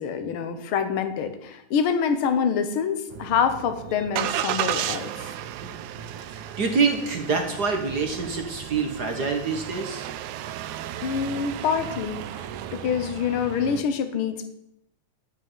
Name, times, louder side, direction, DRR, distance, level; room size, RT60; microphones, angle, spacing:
voice 1, 0.0-5.3 11.0-12.4 12.7-14.5, left 7 dB, 55° left, 9 dB, 1.7 m, -26 dB
Engine starting, 3.1-13.8, right 11 dB, 85° right, 2.1 m, -34 dB
voice 2, 5.4-6.0 6.3-10.1, right 4 dB, 45° right, 4 dB, 1.4 m, -26 dB
13.0 x 6.3 x 8.9 m, 0.81 s
omnidirectional pair, 3.5 m